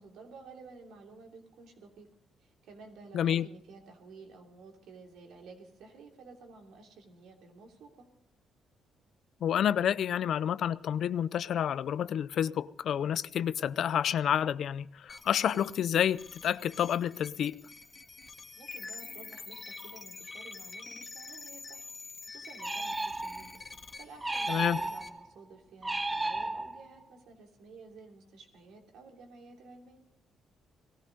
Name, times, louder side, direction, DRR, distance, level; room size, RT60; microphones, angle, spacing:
voice 1, 0.0-2.1 2.4-8.0 18.6-21.9 22.2-23.6 24.0-30.0, right 4 dB, 80° right, 3.1 m, -52 dB
voice 2, 3.1-3.5 9.4-17.6 24.5-24.8, left 9 dB, 65° left, 0.5 m, -29 dB
sound 1, 15.1-25.1, left 4 dB, 35° left, 1.7 m, -47 dB
sound 2, 22.6-23.6 24.2-25.3 25.8-27.0, right 2 dB, 20° right, 0.5 m, -34 dB
18.5 x 14.0 x 5.2 m
cardioid pair, 90°, 0 cm